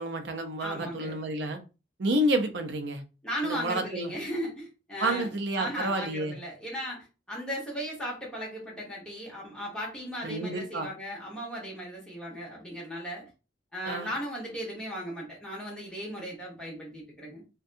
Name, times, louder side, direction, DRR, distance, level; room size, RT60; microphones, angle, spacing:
voice 1, 0.0-1.6 2.0-3.0 3.4-4.1 5.0-6.4 10.2-10.9 13.8-14.1, right 1 dB, 65° right, 6 dB, 0.5 m, -29 dB
voice 2, 0.6-1.2 3.2-5.3 5.6-13.3 13.7-17.4, equal, 5° left, -5 dB, 1.0 m, -36 dB
2.6 x 2.2 x 2.5 m, 0.31 s
head